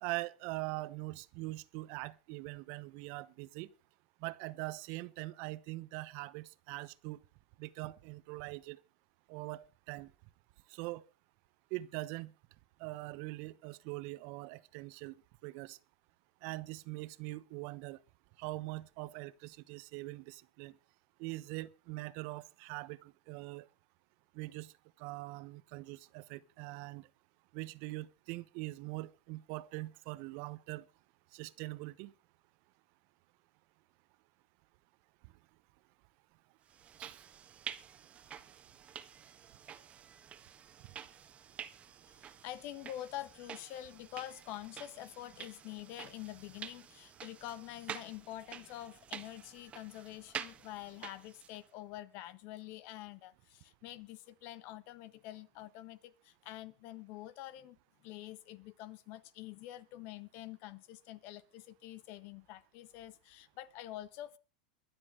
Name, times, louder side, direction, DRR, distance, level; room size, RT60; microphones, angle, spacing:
voice 1, 0.0-3.7 4.2-7.2 7.6-8.8 9.3-10.1 10.7-11.0 11.7-12.3 12.8-15.1 15.4-15.8 16.4-18.0 18.4-20.7 21.2-23.7 24.3-24.7 25.0-27.1 27.5-30.9 31.3-32.1 37.0-37.2, right 21 dB, 55° right, 1.0 m, -42 dB
sound 1, 36.7-51.7, right 8 dB, 25° right, 1.4 m, -49 dB
voice 2, 42.1-64.4, left 14 dB, 50° left, 1.4 m, -47 dB
22.5 x 7.6 x 5.0 m
supercardioid pair, 120°, 4 cm